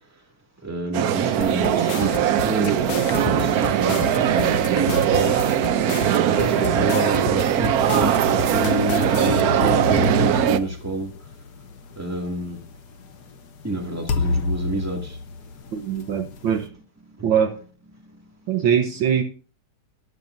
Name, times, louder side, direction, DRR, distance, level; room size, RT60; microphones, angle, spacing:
voice 1, 0.6-5.4 6.2-11.1 12.0-12.6 13.6-15.2, right 1 dB, 5° right, 2.0 m, -29 dB
sound 1, 0.9-10.6, right 10 dB, 85° right, 0.8 m, -20 dB
sound 2, 1.4-9.4, left 9 dB, 90° left, 1.6 m, -32 dB
sound 3, 2.3-3.3 3.8-6.2 7.4-11.8 12.6-12.7 14.1-16.0, left 3 dB, 55° left, 1.3 m, -30 dB
voice 2, 15.7-16.7 17.2-17.6 18.5-19.2, right 8 dB, 65° right, 1.6 m, -22 dB
14.5 x 10.5 x 2.6 m
omnidirectional pair, 2.4 m